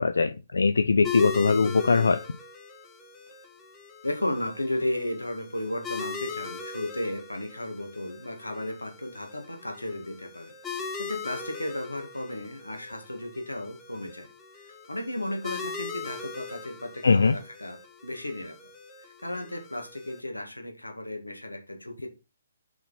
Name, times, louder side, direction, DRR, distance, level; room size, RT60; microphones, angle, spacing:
voice 1, 0.0-2.2 17.0-17.4, left 4 dB, 70° left, 9 dB, 0.5 m, -21 dB
sound 1, 1.0-20.2, left 5 dB, 10° left, 1.3 m, -40 dB
voice 2, 4.0-14.3 14.5-17.8 18.0-18.6 19.0-22.1, left 1 dB, 90° left, 4 dB, 1.8 m, -34 dB
5.8 x 5.5 x 4.2 m, 0.28 s
figure-of-eight pair, 130°, 0 cm